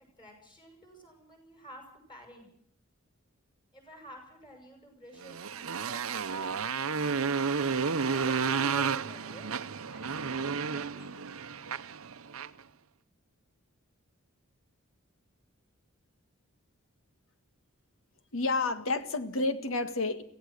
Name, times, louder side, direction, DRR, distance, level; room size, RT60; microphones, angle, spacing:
voice 1, 0.2-2.5 3.7-7.4 8.1-9.5 9.9-11.2, equal, 20° left, 3 dB, 7.7 m, -51 dB
Motorcycle, 5.2-12.6, right 5 dB, 80° right, 0.8 m, -31 dB
voice 2, 18.3-20.2, left 3 dB, 70° left, 10 dB, 1.7 m, -30 dB
24.5 x 16.5 x 6.5 m, 0.67 s
head